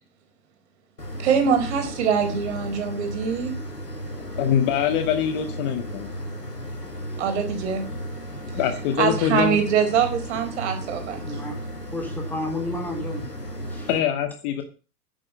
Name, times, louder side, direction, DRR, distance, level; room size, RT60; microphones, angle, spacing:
sound 1, 1.0-14.0, equal, 85° left, 4.1 m, -34 dB
voice 1, 1.2-3.5 7.2-7.8 9.0-11.2, right 7 dB, 45° right, 5 dB, 4.4 m, -23 dB
voice 2, 4.3-6.1 8.4-9.6 13.9-14.6, left 9 dB, 30° left, 8 dB, 1.7 m, -24 dB
voice 3, 11.3-11.6 11.9-13.4 13.7-13.9, left 1 dB, 5° left, 1 dB, 3.5 m, -31 dB
10.5 x 9.6 x 7.2 m, 0.35 s
figure-of-eight pair, 110°, 47 cm